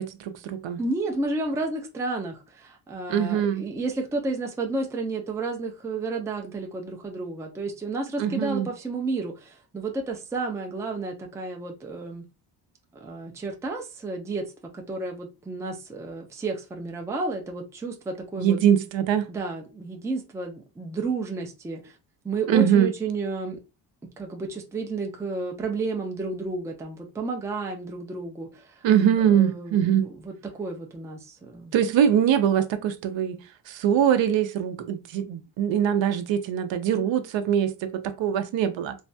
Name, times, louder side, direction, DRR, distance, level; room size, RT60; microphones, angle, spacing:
voice 1, 0.0-0.8 3.1-3.6 8.2-8.7 18.4-19.3 22.5-22.9 28.8-30.0 31.7-33.4 33.7-39.0, right 9 dB, 70° right, 0.6 m, -22 dB
voice 2, 0.8-12.2 13.0-18.6 19.3-22.0 22.2-23.6 24.2-28.8 29.2-31.7, right 3 dB, 5° right, 0.3 m, -32 dB
3.2 x 2.2 x 2.6 m
wide cardioid pair, 155°, 46 cm